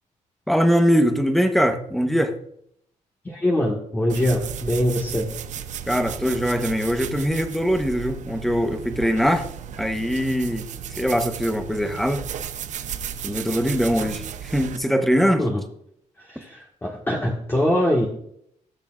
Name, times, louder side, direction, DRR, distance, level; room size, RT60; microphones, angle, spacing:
voice 1, 0.5-2.4 5.9-9.5 9.8-12.2 13.2-15.4, equal, ahead, 7 dB, 1.0 m, -22 dB
voice 2, 3.2-5.2 15.4-15.6 16.2-18.1, left 1 dB, 15° left, -3 dB, 1.6 m, -23 dB
sound 1, 4.1-14.8, right 8 dB, 70° right, 0.7 m, -34 dB
19.0 x 6.8 x 2.5 m, 0.69 s
cardioid pair, 125°, 13 cm